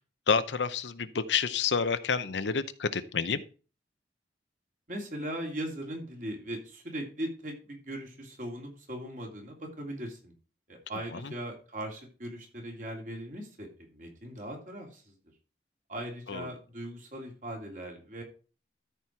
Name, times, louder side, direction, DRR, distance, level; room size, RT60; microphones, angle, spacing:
voice 1, 0.3-3.4 11.1-11.3 16.3-16.5, left 5 dB, 90° left, 13 dB, 0.7 m, -29 dB
voice 2, 4.9-10.3 10.7-15.1 15.9-18.2, right 1 dB, 45° right, 1 dB, 2.8 m, -39 dB
13.5 x 4.5 x 4.6 m, 0.36 s
head